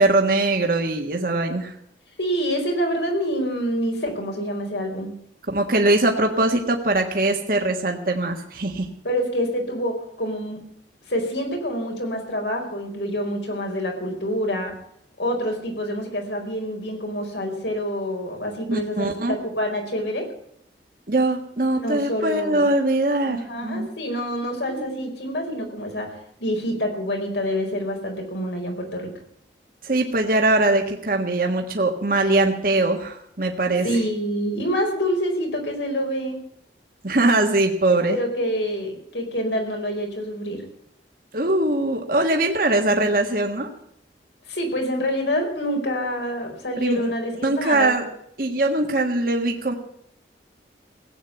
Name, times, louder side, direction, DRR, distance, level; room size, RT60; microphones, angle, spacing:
voice 1, 0.0-1.7 5.5-8.9 18.7-19.4 21.1-23.9 24.7-24.9 25.5-25.6 29.8-33.9 37.0-38.2 41.3-43.7 46.8-47.1 47.4-48.0 48.4-49.7, right 2 dB, 50° right, 3 dB, 1.6 m, -21 dB
voice 2, 2.2-5.1 9.0-10.6 11.1-14.7 15.2-20.3 21.7-22.7 23.3-26.1 26.4-29.1 33.8-36.4 38.1-40.6 44.5-48.0, equal, 80° left, 2 dB, 4.5 m, -27 dB
16.5 x 8.7 x 9.4 m, 0.70 s
head